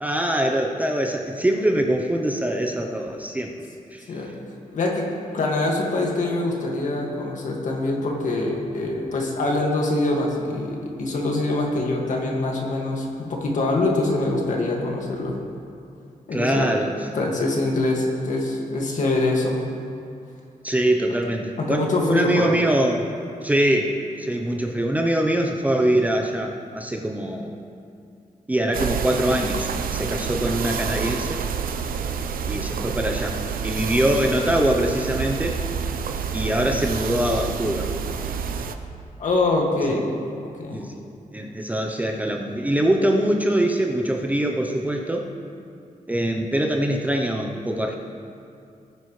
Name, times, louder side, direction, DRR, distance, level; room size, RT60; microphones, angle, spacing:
voice 1, 0.0-3.5 3.9-4.2 16.3-16.9 20.6-23.1 23.4-27.6 28.5-31.4 32.5-35.6 36.3-37.9 39.9-40.0 40.7-41.0 41.3-45.2 46.1-48.0, right 1 dB, 10° right, 1 dB, 0.6 m, -23 dB
voice 2, 4.7-5.1 5.3-15.4 16.3-16.7 17.1-19.6 21.6-22.7 39.2-40.1 40.4-40.8, left 2 dB, 60° left, -1 dB, 1.9 m, -24 dB
sound 1, 28.7-38.8, right 6 dB, 85° right, 0.6 m, -28 dB
19.5 x 9.5 x 3.2 m, 2.5 s
wide cardioid pair, 180°, 14 cm